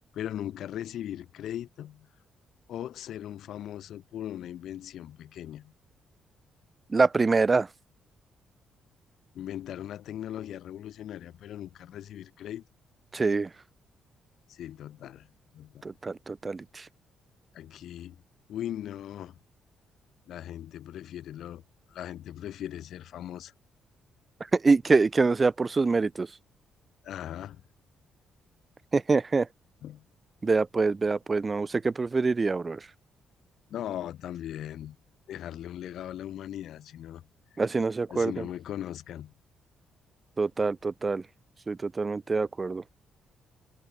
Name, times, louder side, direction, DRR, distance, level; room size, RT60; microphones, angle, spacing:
voice 1, 0.1-2.1 2.7-5.7 9.3-12.6 14.5-15.3 15.5-15.8 17.5-18.2 18.5-19.4 20.3-21.6 21.9-23.5 27.0-27.6 29.8-30.0 33.7-35.0 35.3-37.3 37.5-37.6 38.1-39.3, left 11 dB, 75° left, 2.5 m, -39 dB
voice 2, 6.9-7.7 13.1-13.5 15.8-16.9 24.5-26.3 28.9-29.5 30.4-32.9 37.6-38.3 40.4-41.2 41.7-42.8, right 4 dB, 30° right, 0.5 m, -25 dB
cardioid pair, 90°, 0 cm